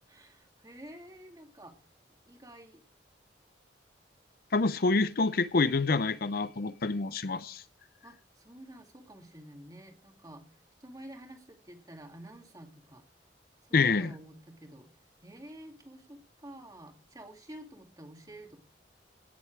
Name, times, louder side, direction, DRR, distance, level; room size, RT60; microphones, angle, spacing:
voice 1, 0.1-1.8 2.3-2.8 8.0-13.1 13.7-15.0 15.2-18.6, right 1 dB, 20° right, 2.5 m, -50 dB
voice 2, 4.5-7.6 13.7-14.1, left 3 dB, 55° left, 0.6 m, -27 dB
17.5 x 7.8 x 4.7 m
head